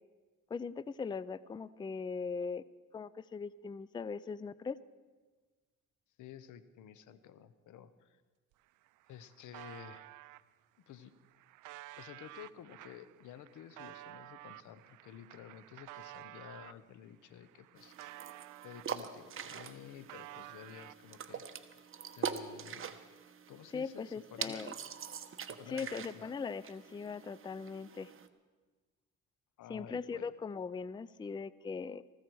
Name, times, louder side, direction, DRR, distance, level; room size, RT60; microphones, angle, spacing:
voice 1, 0.5-2.6 2.9-4.8 23.7-24.7 25.7-28.1 29.7-32.0, left 5 dB, 15° left, 18 dB, 0.4 m, -40 dB
voice 2, 6.2-8.2 9.1-10.1 10.9-11.1 12.0-17.9 18.2-18.4 18.6-21.7 22.2-23.0 23.5-24.7 25.5-26.3 29.6-30.3, left 9 dB, 80° left, 14 dB, 0.9 m, -52 dB
sound 1, 8.5-8.6 8.9-10.4 11.0-16.8 17.3-19.2 19.5-21.3, right 17 dB, 90° right, 0.5 m, -52 dB
sound 2, 17.8-28.3, right 7 dB, 45° right, 1.0 m, -44 dB
19.0 x 15.0 x 4.7 m, 1.4 s
cardioid pair, 90°, 30 cm